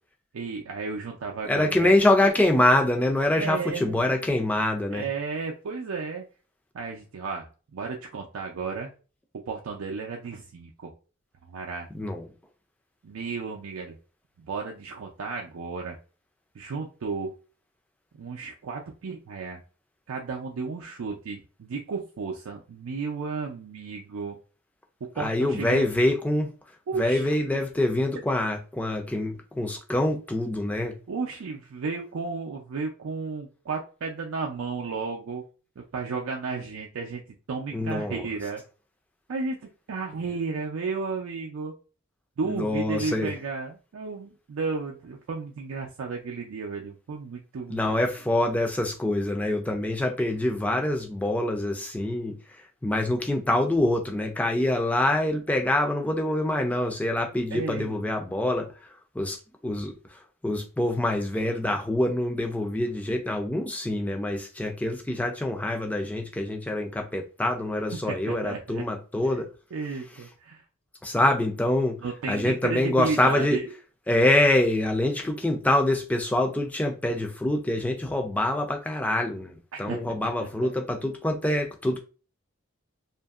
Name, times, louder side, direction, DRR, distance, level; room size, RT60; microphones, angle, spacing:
voice 1, 0.3-1.9 3.4-4.0 4.9-6.3 6.7-8.9 9.5-10.9 11.5-11.9 13.0-14.0 14.4-16.0 16.5-17.3 18.2-19.6 20.1-24.4 25.0-25.9 26.9-27.4 31.1-35.4 35.8-37.2 37.5-38.6 39.3-39.6 39.9-41.7 42.4-47.8 57.5-58.1 67.9-68.8 69.7-70.6 72.0-73.7 79.7-80.0, right 4 dB, 85° right, 0.4 m, -33 dB
voice 2, 1.4-5.1 11.9-12.3 25.2-26.5 26.9-31.0 37.7-38.3 42.5-43.3 47.7-52.3 52.8-58.7 59.2-59.4 59.6-59.9 60.4-69.5 71.0-72.0 72.3-73.6 74.1-82.0, left 1 dB, 5° left, 0.3 m, -25 dB
2.7 x 2.5 x 2.3 m
head